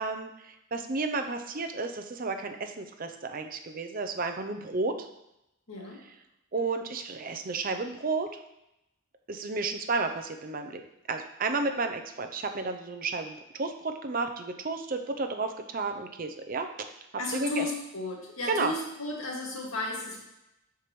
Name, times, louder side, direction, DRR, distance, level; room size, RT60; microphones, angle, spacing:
voice 1, 0.0-5.1 6.5-8.3 9.3-10.8 11.1-16.7 17.3-17.6 18.5-18.7, right 3 dB, 40° right, 6 dB, 0.5 m, -32 dB
voice 2, 5.7-6.0 17.2-20.2, left 2 dB, 75° left, -2 dB, 2.1 m, -34 dB
12.5 x 4.7 x 3.1 m, 0.87 s
head